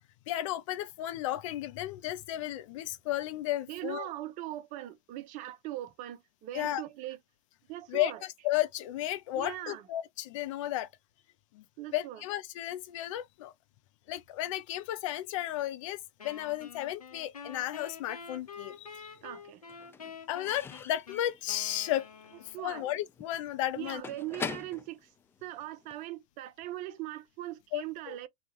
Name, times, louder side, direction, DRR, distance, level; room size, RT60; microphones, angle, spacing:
voice 1, 0.3-4.1 6.5-6.8 7.9-10.9 11.5-11.6 11.9-13.5 14.1-19.1 20.3-22.1 22.4-24.0 27.7-28.2, left 14 dB, 60° left, 0.7 m, -34 dB
voice 2, 3.7-7.2 7.7-8.2 9.3-9.9 11.8-12.2 19.2-19.6 22.5-22.9 23.7-25.1 25.4-28.3, right 15 dB, 45° right, 0.7 m, -40 dB
Wind instrument woodwind instrument, 16.2-22.8, left 6 dB, 85° left, 0.9 m, -47 dB
Slam / Squeak / Wood, 18.2-19.0 19.3-26.1, left 6 dB, 10° left, 0.3 m, -44 dB
3.7 x 2.4 x 3.0 m
figure-of-eight pair, 85°, 19 cm